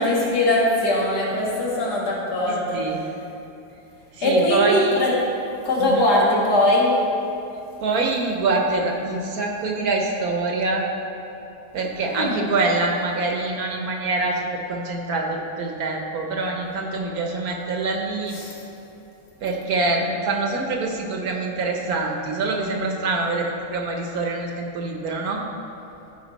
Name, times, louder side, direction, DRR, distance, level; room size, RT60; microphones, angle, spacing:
voice 1, 0.0-2.8 4.2-5.1 5.6-6.9 12.1-12.4 18.4-18.5, left 1 dB, 75° left, -5 dB, 2.3 m, -21 dB
voice 2, 2.5-3.0 4.2-5.0 5.8-6.1 7.8-10.8 11.7-18.3 19.4-25.4, right 3 dB, 65° right, 1 dB, 1.3 m, -25 dB
13.5 x 5.0 x 4.1 m, 2.9 s
omnidirectional pair, 1.8 m